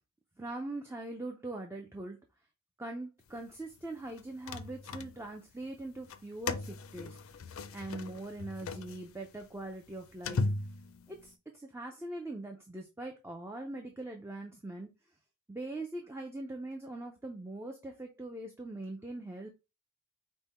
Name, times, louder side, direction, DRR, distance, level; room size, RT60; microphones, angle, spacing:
voice 1, 0.4-2.2 2.8-7.2 7.7-10.5 11.1-14.9 15.5-19.5, right 2 dB, 10° right, 3 dB, 0.4 m, -42 dB
sound 1, 4.1-5.5 6.0-11.3, left 3 dB, 70° left, 0.4 m, -38 dB
5.3 x 2.2 x 4.1 m, 0.27 s
head